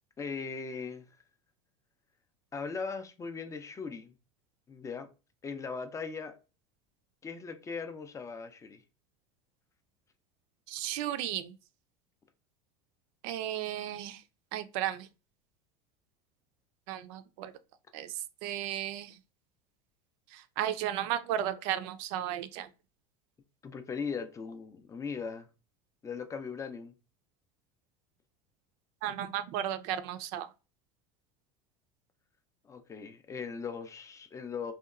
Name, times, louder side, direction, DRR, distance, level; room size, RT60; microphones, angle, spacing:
voice 1, 0.2-1.0 2.5-4.1 4.7-5.1 5.4-6.4 7.2-8.8 23.6-25.5 26.0-26.9 32.6-34.7, left 5 dB, 15° left, 0.4 m, -39 dB
voice 2, 10.7-11.5 13.2-14.2 14.5-15.1 16.9-17.5 17.9-18.1 18.4-19.1 20.3-22.7 29.0-30.5, right 11 dB, 65° right, 0.4 m, -34 dB
2.8 x 2.2 x 2.4 m
supercardioid pair, 100°, 18 cm